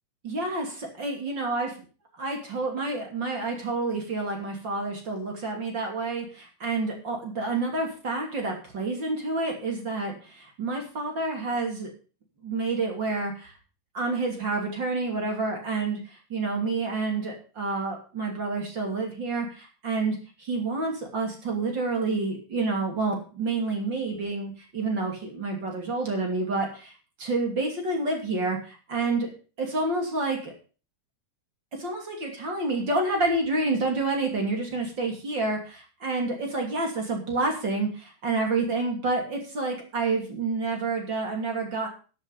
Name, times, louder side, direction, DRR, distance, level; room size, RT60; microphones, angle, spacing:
voice 1, 0.2-1.7 2.2-11.9 12.4-13.5 13.9-26.9 27.2-29.3 29.6-30.5 31.7-41.9, right 3 dB, 35° right, 2 dB, 3.1 m, -29 dB
14.0 x 7.7 x 5.3 m, 0.36 s
omnidirectional pair, 3.9 m